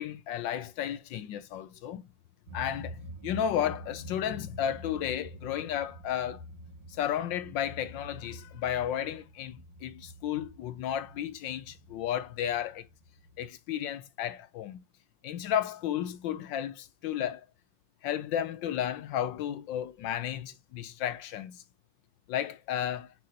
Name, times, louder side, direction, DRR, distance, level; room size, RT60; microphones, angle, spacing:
voice 1, 0.0-2.1 2.5-6.4 6.9-12.9 13.4-14.8 15.2-17.4 18.0-21.6 22.3-23.1, left 10 dB, 75° left, 1.2 m, -33 dB
sound 1, 2.5-13.4, equal, 70° right, 2.2 m, -47 dB
6.4 x 6.1 x 2.7 m
omnidirectional pair, 2.4 m